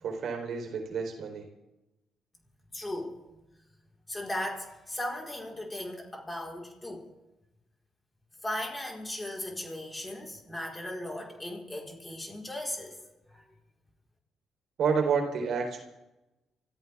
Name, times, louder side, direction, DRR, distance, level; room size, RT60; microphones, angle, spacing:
voice 1, 0.0-1.5 14.8-15.8, right 5 dB, 65° right, 3 dB, 3.9 m, -29 dB
voice 2, 2.7-3.4 4.1-7.1 8.4-13.0 13.3-13.4, left 1 dB, 15° left, 0 dB, 4.5 m, -37 dB
25.5 x 14.5 x 3.6 m, 0.98 s
cardioid pair, 90°, 0 cm